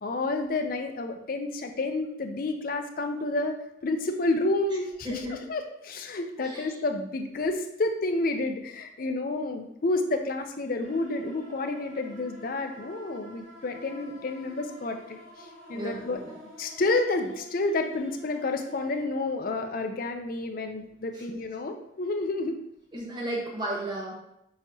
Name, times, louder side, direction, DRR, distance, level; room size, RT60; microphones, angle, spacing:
voice 1, 0.0-3.5 3.8-22.6, left 2 dB, 45° left, 5 dB, 0.5 m, -30 dB
voice 2, 5.0-5.5 6.4-6.8 15.7-16.3 21.1-21.2 22.9-24.1, right 1 dB, 20° right, -3 dB, 1.0 m, -34 dB
sound 1, 10.8-19.1, equal, 60° right, 1.7 m, -49 dB
6.4 x 2.9 x 2.7 m, 0.79 s
head